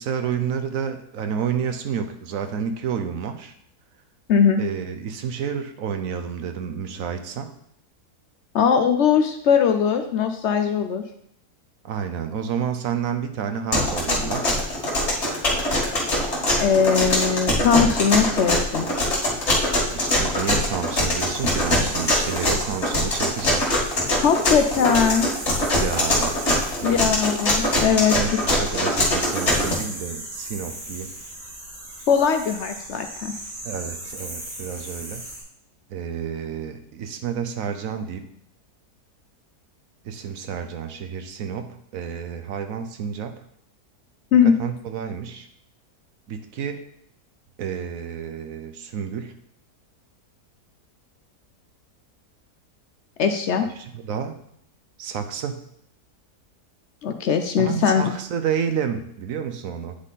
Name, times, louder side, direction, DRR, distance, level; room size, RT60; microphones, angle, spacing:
voice 1, 0.0-3.5 4.6-7.5 11.8-14.5 19.9-23.7 25.7-27.0 28.1-31.1 33.6-35.2 35.9-38.3 40.0-43.4 44.4-45.5 46.3-46.8 47.6-49.3 53.8-54.4 55.0-55.6 57.6-60.0, right 7 dB, 65° right, 7 dB, 1.1 m, -30 dB
voice 2, 4.3-4.6 8.5-11.0 16.6-18.9 24.2-25.3 26.8-28.1 32.1-33.3 44.3-44.5 53.2-53.7 57.0-58.1, left 7 dB, 70° left, 7 dB, 0.7 m, -20 dB
sound 1, 13.7-29.7, left 1 dB, 45° left, 2.2 m, -22 dB
sound 2, 18.9-35.4, right 1 dB, 80° right, 4.0 m, -38 dB
9.8 x 3.7 x 4.1 m, 0.70 s
omnidirectional pair, 1.7 m